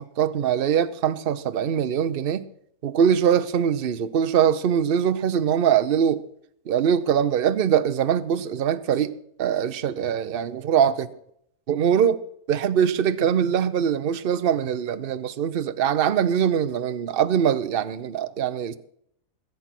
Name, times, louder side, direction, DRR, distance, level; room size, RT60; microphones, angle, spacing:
voice 1, 0.2-2.5 2.8-6.2 6.7-9.1 9.4-11.1 11.7-12.2 12.5-18.7, right 8 dB, 45° right, 0.8 m, -22 dB
20.5 x 8.9 x 6.0 m
omnidirectional pair, 1.7 m